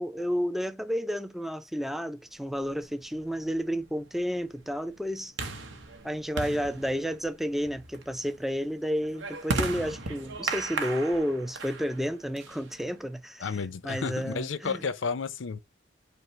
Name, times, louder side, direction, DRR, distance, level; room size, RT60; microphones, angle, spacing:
voice 1, 0.0-5.3 6.0-13.5 13.8-14.8, equal, ahead, 0.3 m, -31 dB
sound 1, 2.7-13.1, right 3 dB, 80° right, 0.8 m, -37 dB
voice 2, 13.4-15.6, left 5 dB, 80° left, 0.6 m, -32 dB
5.3 x 2.0 x 4.3 m
head